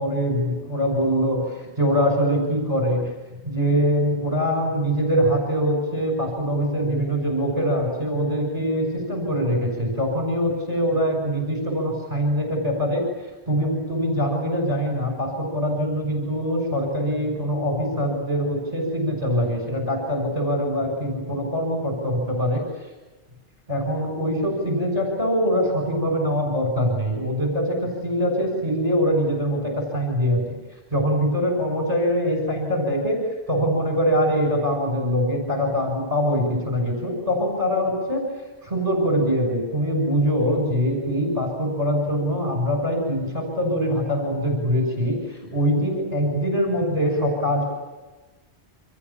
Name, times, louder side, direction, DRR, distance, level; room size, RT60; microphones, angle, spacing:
voice 1, 0.0-3.1 3.4-13.0 13.5-22.6 23.7-30.6 30.9-38.2 38.6-47.7, equal, 35° right, 2 dB, 7.0 m, -23 dB
29.5 x 26.5 x 7.3 m, 1.2 s
omnidirectional pair, 1.1 m